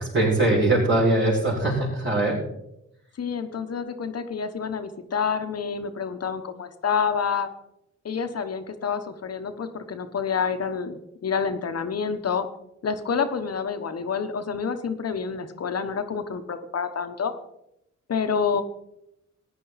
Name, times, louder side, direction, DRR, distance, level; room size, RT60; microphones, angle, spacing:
voice 1, 0.0-2.4, right 2 dB, 40° right, -8 dB, 5.0 m, -21 dB
voice 2, 3.2-7.5 8.0-12.5 12.8-17.3 18.1-18.6, left 6 dB, 55° left, 8 dB, 1.2 m, -28 dB
14.5 x 9.9 x 4.2 m, 0.81 s
cardioid pair, 85°, 30 cm